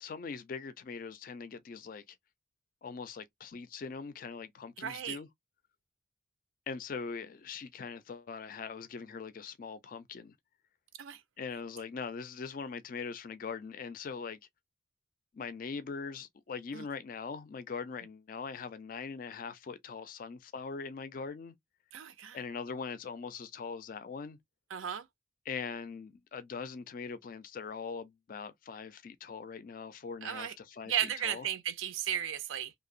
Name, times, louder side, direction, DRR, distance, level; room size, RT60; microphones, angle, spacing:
voice 1, 0.0-2.2 2.8-5.3 6.7-10.3 11.4-14.4 15.3-21.5 22.3-24.4 25.5-31.5, left 5 dB, 45° left, 0.3 m, -41 dB
voice 2, 4.8-5.2 11.0-11.2 16.7-16.8 21.9-22.4 24.7-25.1 30.2-30.5 30.9-32.7, right 9 dB, 85° right, 0.5 m, -35 dB
2.7 x 2.1 x 2.4 m
head